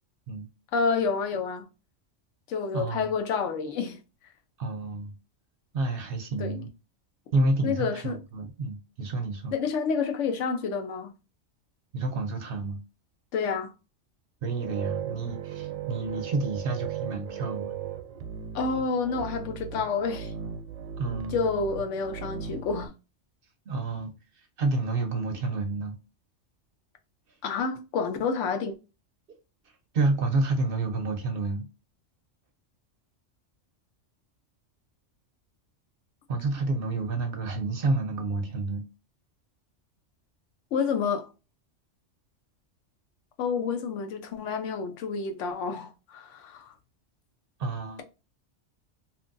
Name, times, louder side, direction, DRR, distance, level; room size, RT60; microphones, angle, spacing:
voice 1, 0.7-1.7 2.5-4.0 6.4-6.6 7.6-8.2 9.5-11.1 13.3-13.7 18.5-20.3 21.3-22.9 27.4-28.7 40.7-41.3 43.4-46.7, left 5 dB, 80° left, 0.9 m, -29 dB
voice 2, 2.7-3.1 4.6-5.1 5.7-6.7 7.3-9.5 11.9-12.8 14.4-17.7 21.0-21.4 23.7-24.1 24.6-26.0 29.9-31.7 36.3-38.8 47.6-48.0, right 2 dB, 60° right, 0.6 m, -29 dB
sound 1, 14.4-22.9, right 8 dB, 85° right, 0.9 m, -37 dB
2.8 x 2.5 x 2.4 m
omnidirectional pair, 1.3 m